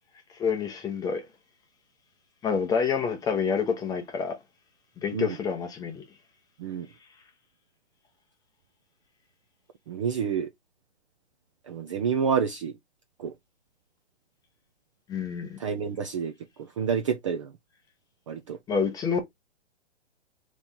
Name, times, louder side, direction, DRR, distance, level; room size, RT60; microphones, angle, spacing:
voice 1, 0.4-1.3 2.4-4.4 5.0-6.0 15.1-15.6 18.7-19.2, left 6 dB, 10° left, 0.7 m, -28 dB
voice 2, 9.9-10.5 11.7-12.7 13.2-13.3 15.6-16.3 16.6-17.5 18.3-18.6, right 6 dB, 30° right, 0.4 m, -28 dB
4.0 x 3.1 x 3.6 m
hypercardioid pair, 135°, 35 cm